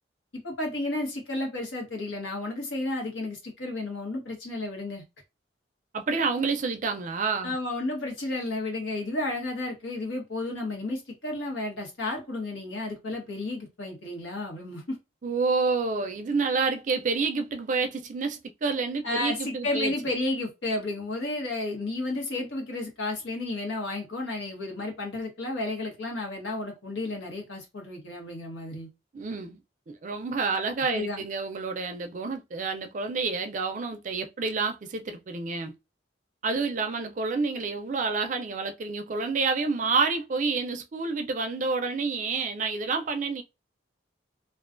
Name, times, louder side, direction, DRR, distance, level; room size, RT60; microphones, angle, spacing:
voice 1, 0.3-5.0 7.4-15.0 19.0-28.9 30.9-31.2, left 2 dB, 85° left, 1.1 m, -32 dB
voice 2, 5.9-7.6 15.2-19.9 29.1-29.6 29.9-35.7 36.4-43.4, right 4 dB, 40° right, 0.4 m, -28 dB
2.3 x 2.2 x 2.4 m
head